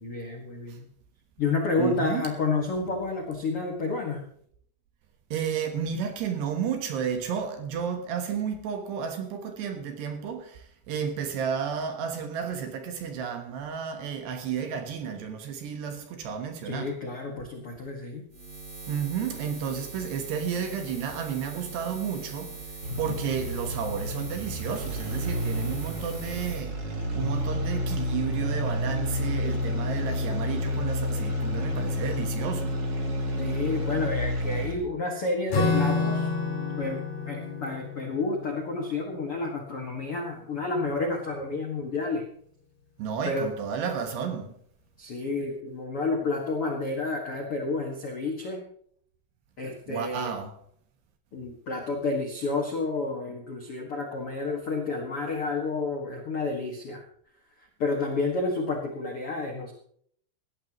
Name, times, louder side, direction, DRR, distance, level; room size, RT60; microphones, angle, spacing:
voice 1, 0.0-0.9 1.4-4.2 16.6-18.2 22.9-23.2 33.4-36.3 36.8-42.2 43.2-43.5 45.0-48.6 49.6-50.3 51.3-57.0 57.8-59.7, left 3 dB, 75° left, 1.3 m, -30 dB
voice 2, 1.8-2.3 5.3-17.0 18.9-22.6 23.0-26.8 27.1-32.8 43.0-44.5 49.9-50.6, right 7 dB, 70° right, 2.9 m, -32 dB
Buzz, 18.3-26.6, right 3 dB, 15° right, 4.0 m, -42 dB
sound 1, 22.8-34.9, left 1 dB, 35° right, 2.8 m, -30 dB
Acoustic guitar / Strum, 35.5-40.3, left 3 dB, 45° left, 5.5 m, -30 dB
18.5 x 14.5 x 3.1 m
omnidirectional pair, 5.9 m